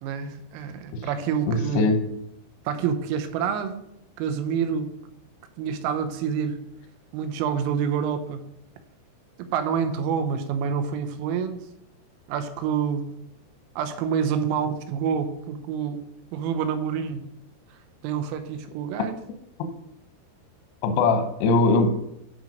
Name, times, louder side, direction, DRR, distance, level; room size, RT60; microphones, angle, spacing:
voice 1, 0.0-1.9 2.7-3.8 4.2-4.9 5.6-6.6 7.1-8.4 9.4-11.7 12.3-13.1 13.8-16.0 16.3-17.2 18.0-19.1, right 7 dB, 85° right, 7 dB, 3.4 m, -27 dB
voice 2, 1.5-2.0 20.8-21.9, left 3 dB, 80° left, 7 dB, 2.5 m, -20 dB
11.0 x 4.0 x 5.1 m, 0.82 s
omnidirectional pair, 6.0 m